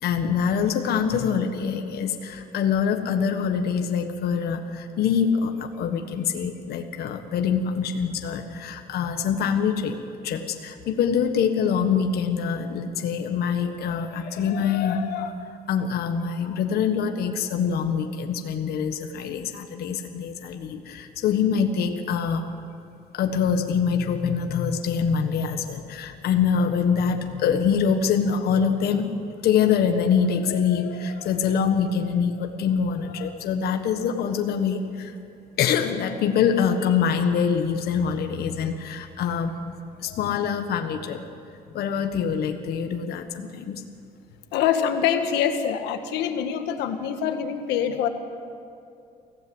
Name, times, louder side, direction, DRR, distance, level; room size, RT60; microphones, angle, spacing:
voice 1, 0.0-10.0 10.2-22.4 23.1-29.1 29.4-35.2 35.6-39.6 40.0-41.2 41.7-43.8, left 7 dB, 70° left, 5 dB, 1.5 m, -24 dB
voice 2, 44.5-48.1, left 8 dB, 90° left, 6 dB, 1.6 m, -25 dB
24.0 x 16.0 x 8.0 m, 2.5 s
cardioid pair, 110°, 17 cm